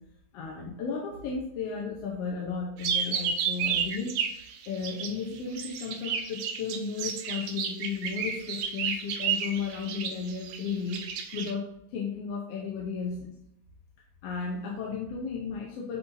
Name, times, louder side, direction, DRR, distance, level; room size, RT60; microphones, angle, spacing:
voice 1, 0.3-4.4 4.7-11.0 11.3-13.3 14.2-16.0, left 5 dB, 65° left, -2 dB, 1.7 m, -34 dB
sound 1, 2.8-5.2 5.5-11.5, right 7 dB, 70° right, 1.6 m, -31 dB
9.6 x 4.3 x 2.7 m, 0.78 s
omnidirectional pair, 3.3 m